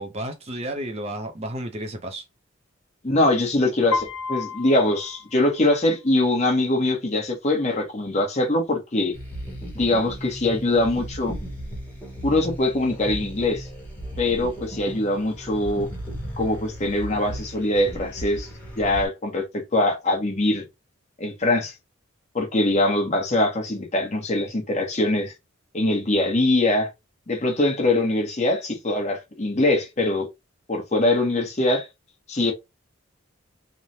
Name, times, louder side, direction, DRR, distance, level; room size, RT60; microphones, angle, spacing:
voice 1, 0.0-2.2, right 1 dB, 30° right, 0.5 m, -32 dB
voice 2, 3.0-9.1 9.7-11.3 12.2-13.7 14.2-15.9 16.4-18.5 18.8-20.6 21.2-21.7 22.3-25.3 25.7-26.9 27.3-30.3 30.7-31.9 32.3-32.5, left 2 dB, 35° left, 0.9 m, -22 dB
Piano, 3.9-6.0, left 4 dB, 85° left, 0.7 m, -31 dB
sound 1, 9.1-19.1, right 1 dB, 10° left, 1.0 m, -36 dB
3.1 x 2.1 x 2.7 m
head